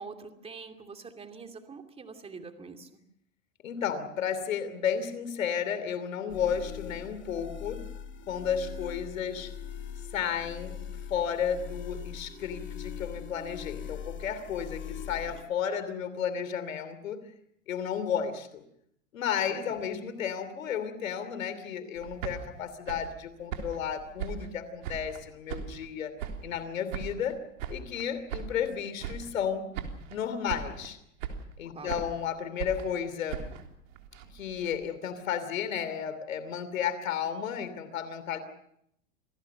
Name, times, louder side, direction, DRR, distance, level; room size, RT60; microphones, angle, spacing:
voice 1, 0.0-2.9 19.5-19.8 31.7-31.9, right 4 dB, 15° right, 6 dB, 2.7 m, -45 dB
voice 2, 3.6-7.8 8.3-9.5 10.1-10.8 11.1-17.2 17.7-18.6 19.1-26.1 26.4-27.4 27.7-29.7 30.1-31.0 31.6-33.5 34.3-38.4, left 8 dB, 90° left, 12 dB, 3.0 m, -33 dB
sound 1, 6.3-15.4, left 8 dB, 30° left, 2.7 m, -41 dB
sound 2, 21.9-25.2 25.5-26.6 26.9-28.7 29.0-29.5 29.7-30.2 30.5-30.9 31.2-32.2 32.6-34.8, right 7 dB, 75° right, 3.6 m, -39 dB
26.5 x 18.5 x 6.8 m, 0.74 s
hypercardioid pair, 125°, 39 cm